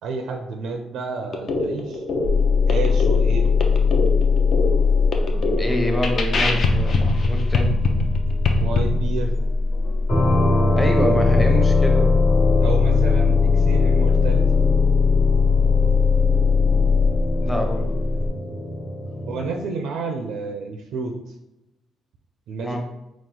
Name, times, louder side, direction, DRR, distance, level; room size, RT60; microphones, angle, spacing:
voice 1, 0.0-2.0 2.7-3.5 8.5-9.3 11.1-11.2 12.6-14.4 19.3-21.2 22.5-22.8, right 4 dB, 85° right, 4 dB, 0.4 m, -30 dB
sound 1, 1.3-8.8, left 3 dB, 55° left, 0.6 m, -25 dB
sound 2, 2.2-18.3, left 5 dB, 35° left, 1.2 m, -20 dB
voice 2, 5.3-7.7 10.7-12.1 17.4-17.9 22.6-22.8, equal, 10° left, 2 dB, 0.8 m, -26 dB
sound 3, 10.1-19.6, left 1 dB, 70° left, 1.5 m, -24 dB
4.2 x 2.4 x 3.7 m, 0.92 s
cardioid pair, 90°, 0 cm